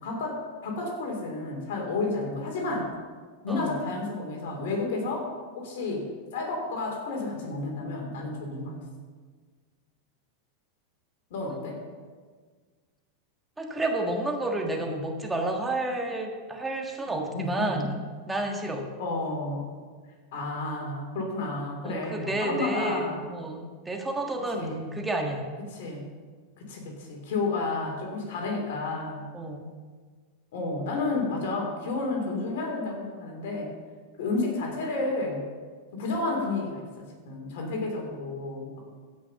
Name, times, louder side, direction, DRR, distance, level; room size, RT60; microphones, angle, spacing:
voice 1, 0.0-3.0 3.4-8.8 11.3-11.8 17.3-17.9 19.0-19.7 20.3-23.3 24.5-25.0 25.7-26.1 26.6-29.2 30.5-33.7 34.2-35.4 35.9-38.7, left 3 dB, 65° left, 1 dB, 3.3 m, -31 dB
voice 2, 3.5-3.8 11.5-11.6 13.6-18.0 18.3-18.9 21.8-25.4 29.3-29.6, right 2 dB, 10° right, 2 dB, 1.6 m, -30 dB
15.0 x 6.2 x 5.8 m, 1.5 s
hypercardioid pair, 100°, 0 cm